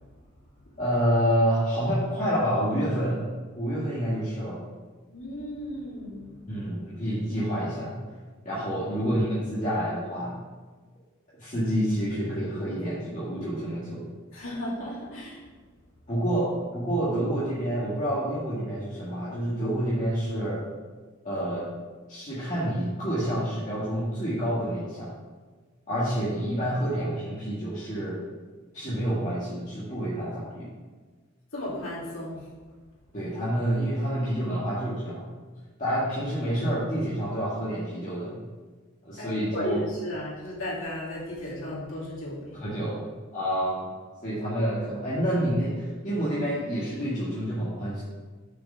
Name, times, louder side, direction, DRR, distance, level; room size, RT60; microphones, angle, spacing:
voice 1, 0.8-3.2 3.6-4.6 6.5-8.0 8.4-10.4 11.4-14.0 16.1-20.6 21.2-21.7 22.1-25.1 25.9-28.2 28.7-30.7 33.1-35.3 35.8-38.4 39.0-39.8 42.5-43.0 43.3-43.9 44.2-48.0, equal, 35° left, -9 dB, 1.7 m, -28 dB
voice 2, 5.1-6.4 14.3-15.4 31.5-32.4 39.2-42.7, left 1 dB, 60° left, -6 dB, 2.8 m, -34 dB
6.7 x 5.0 x 6.6 m, 1.4 s
head